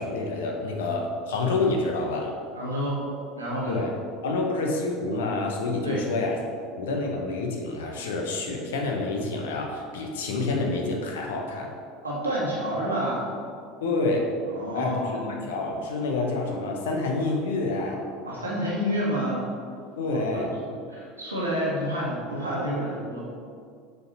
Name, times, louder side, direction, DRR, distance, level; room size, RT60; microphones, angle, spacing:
voice 1, 0.0-2.3 3.7-3.9 4.2-6.4 6.8-11.7 13.8-14.3 14.7-18.0 20.0-20.5, left 3 dB, 65° left, 1 dB, 0.9 m, -28 dB
voice 2, 2.6-3.1 3.3-3.8 5.8-6.0 12.0-13.3 14.4-15.4 18.2-19.4 20.1-23.2, equal, 85° right, -7 dB, 1.7 m, -29 dB
6.5 x 4.6 x 4.2 m, 2.3 s
figure-of-eight pair, 70°, 0 cm